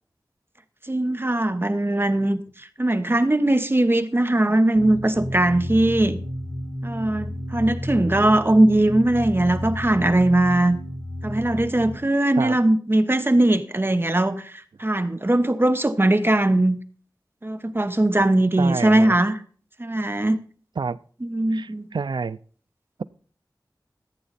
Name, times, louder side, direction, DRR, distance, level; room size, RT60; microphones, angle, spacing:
voice 1, 0.9-2.4 2.8-6.2 6.8-10.8 11.2-14.5 14.8-16.8 17.4-19.4 19.8-20.4 21.2-21.9, right 1 dB, 30° right, 11 dB, 1.0 m, -20 dB
sound 1, 4.7-12.0, equal, 85° left, 4.7 m, -32 dB
voice 2, 18.6-19.2 20.8-21.0 21.5-22.4, right 5 dB, 75° right, 16 dB, 0.4 m, -28 dB
15.0 x 8.6 x 4.1 m, 0.43 s
wide cardioid pair, 60°, 8 cm